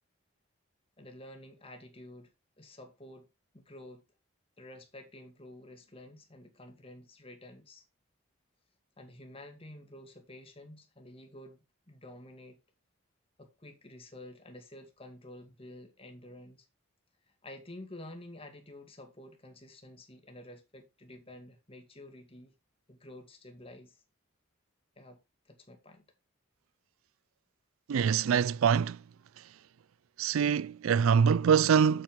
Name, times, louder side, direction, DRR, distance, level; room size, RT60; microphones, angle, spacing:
voice 1, 1.0-2.3 2.6-3.3 3.5-4.0 4.6-7.8 9.0-12.6 13.4-16.7 17.3-22.5 22.9-24.0 25.0-26.0, left 1 dB, 25° left, 2.1 m, -50 dB
voice 2, 27.9-29.0 30.2-32.0, right 7 dB, 80° right, 0.4 m, -24 dB
7.5 x 7.4 x 3.7 m
head